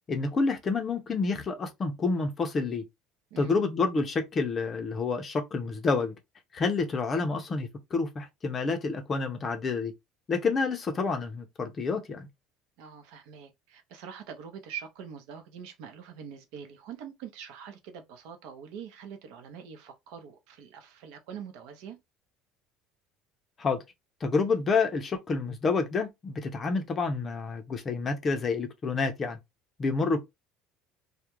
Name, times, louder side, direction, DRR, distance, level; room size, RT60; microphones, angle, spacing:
voice 1, 0.1-2.8 3.4-6.1 6.5-9.9 10.3-12.3 23.6-23.8 24.2-29.4 29.8-30.2, left 4 dB, 25° left, 0.5 m, -28 dB
voice 2, 3.3-3.6 12.8-22.0, right 7 dB, 75° right, 0.6 m, -44 dB
2.3 x 2.1 x 2.9 m
cardioid pair, 160°, 0 cm